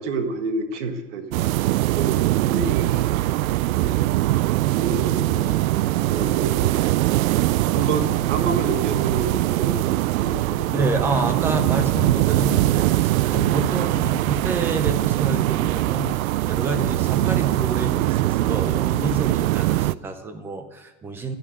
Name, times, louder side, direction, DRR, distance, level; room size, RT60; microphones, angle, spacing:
voice 1, 0.0-1.5 1.9-3.0 3.7-4.2 4.7-6.9 7.7-10.6, right 4 dB, 55° right, 7 dB, 1.7 m, -29 dB
sound 1, 1.3-19.9, right 16 dB, 80° right, 0.5 m, -22 dB
voice 2, 7.6-8.1 10.7-21.4, right 3 dB, 5° right, 7 dB, 0.5 m, -28 dB
12.5 x 9.9 x 7.8 m, 1.1 s
supercardioid pair, 165°, 42 cm